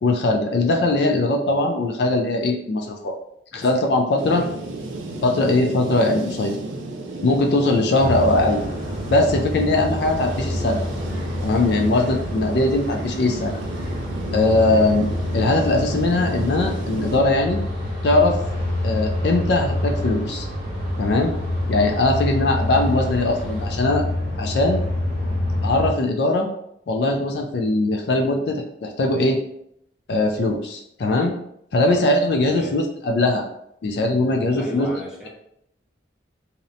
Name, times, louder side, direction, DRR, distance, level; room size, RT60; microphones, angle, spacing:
voice 1, 0.0-3.1 3.5-4.4 5.2-6.6 7.2-8.6 9.1-10.8 11.4-13.6 14.3-15.1 15.3-17.6 18.0-18.4 18.8-20.4 21.0-21.3 21.7-24.0 24.4-24.8 25.6-26.5 26.9-29.4 30.1-31.3 31.7-33.5 33.8-34.9, left 2 dB, 60° left, 3 dB, 0.3 m, -20 dB
voice 2, 3.5-3.9 4.3-4.5 4.9-5.1 31.8-32.0 32.5-32.8 34.6-35.3, equal, 5° right, -4 dB, 0.4 m, -37 dB
sound 1, 4.2-17.2, right 2 dB, 80° right, 0.4 m, -33 dB
sound 2, 8.0-25.9, left 1 dB, 75° left, 1.4 m, -27 dB
sound 3, 10.1-23.7, left 1 dB, 60° right, 0.8 m, -42 dB
2.7 x 2.0 x 2.6 m, 0.75 s
head